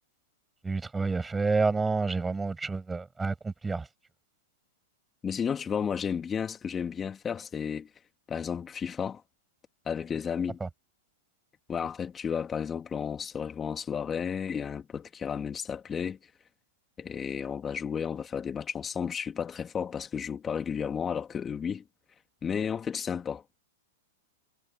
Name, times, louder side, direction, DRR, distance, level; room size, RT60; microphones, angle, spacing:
voice 1, 0.6-3.9 10.6-10.7, right 4 dB, 10° right, 7.8 m, -29 dB
voice 2, 5.2-7.9 8.3-9.2 9.8-10.6 11.7-16.2 17.0-21.8 22.4-23.6, left 7 dB, 20° left, 2.9 m, -33 dB
hypercardioid pair, 115°, 0 cm